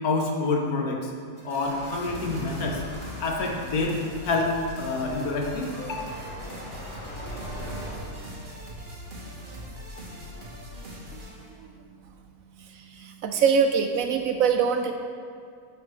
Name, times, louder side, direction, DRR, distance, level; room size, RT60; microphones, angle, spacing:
voice 1, 0.0-1.1 1.4-2.8 3.2-6.1, left 3 dB, 70° left, 0 dB, 1.4 m, -27 dB
sound 1, 1.4-11.6, left 1 dB, 35° right, 1.3 m, -41 dB
sound 2, 1.6-8.0, equal, 20° left, 1.5 m, -41 dB
voice 2, 12.6-14.9, right 6 dB, 70° right, 5 dB, 0.9 m, -24 dB
11.0 x 5.1 x 3.2 m, 2.3 s
omnidirectional pair, 1.6 m